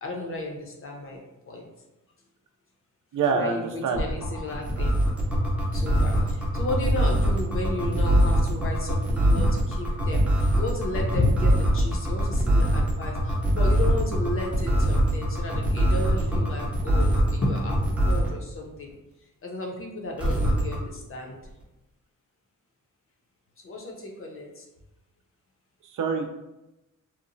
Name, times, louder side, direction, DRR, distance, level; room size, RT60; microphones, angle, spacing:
voice 1, 0.0-1.2 1.5-1.7 3.3-5.0 5.7-10.3 10.6-17.8 18.0-18.9 19.4-21.4 23.6-24.6, left 2 dB, 40° left, 0 dB, 0.6 m, -32 dB
voice 2, 3.1-4.1 25.8-26.3, right 5 dB, 65° right, 4 dB, 0.4 m, -26 dB
sound 1, 4.0-18.4 20.2-20.8, right 1 dB, 5° right, 0.5 m, -23 dB
2.9 x 2.0 x 2.5 m, 0.96 s
wide cardioid pair, 100°, 33 cm